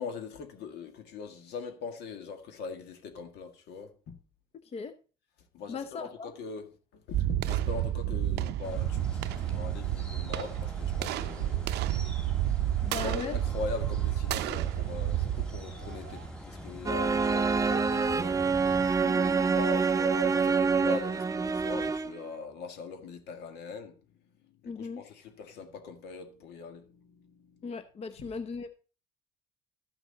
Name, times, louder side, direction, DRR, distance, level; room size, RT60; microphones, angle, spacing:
voice 1, 0.0-4.2 5.5-11.9 12.9-18.8 19.0-24.0 24.4-27.6, left 5 dB, 80° left, 1.9 m, -41 dB
voice 2, 5.7-6.3 12.8-13.3 24.6-25.0 27.6-28.7, left 5 dB, 35° left, 0.8 m, -37 dB
sound 1, 7.1-16.3, right 13 dB, 80° right, 0.6 m, -31 dB
sound 2, 8.6-18.9, equal, 5° left, 2.0 m, -43 dB
sound 3, 16.9-22.3, right 5 dB, 20° right, 0.5 m, -26 dB
13.0 x 6.2 x 4.0 m
cardioid pair, 110°, 17 cm